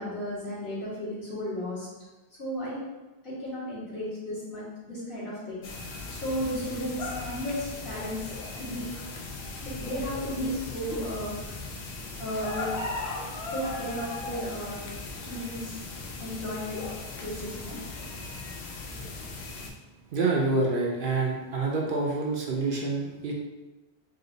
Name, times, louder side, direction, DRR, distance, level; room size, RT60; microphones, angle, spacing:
voice 1, 0.0-1.9 2.4-2.8 3.2-8.2 8.6-8.9 9.6-11.5 12.2-12.7 13.5-14.8 15.2-15.8 16.2-16.8 17.2-17.8, equal, 60° left, -9 dB, 1.8 m, -34 dB
sound 1, 5.6-19.7, left 3 dB, 90° left, 0.9 m, -37 dB
voice 2, 20.1-23.3, right 3 dB, 60° right, -2 dB, 0.8 m, -27 dB
3.8 x 2.5 x 3.8 m, 1.1 s
omnidirectional pair, 1.1 m